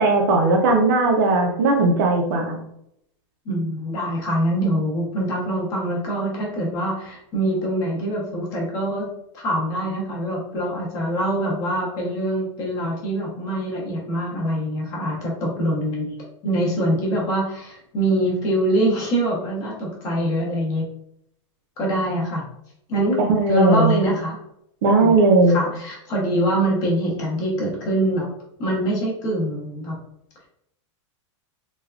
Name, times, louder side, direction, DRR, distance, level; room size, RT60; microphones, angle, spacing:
voice 1, 0.0-2.6 23.2-23.9 24.8-25.6, right 3 dB, 45° right, 2 dB, 0.5 m, -17 dB
voice 2, 3.5-9.1 9.3-16.1 16.4-20.8 21.8-22.4 22.9-23.2 23.5-24.4 25.0-25.2 25.5-28.3 28.6-29.9, right 1 dB, 20° left, -3 dB, 0.7 m, -24 dB
3.3 x 2.2 x 2.3 m, 0.75 s
supercardioid pair, 175°, 16 cm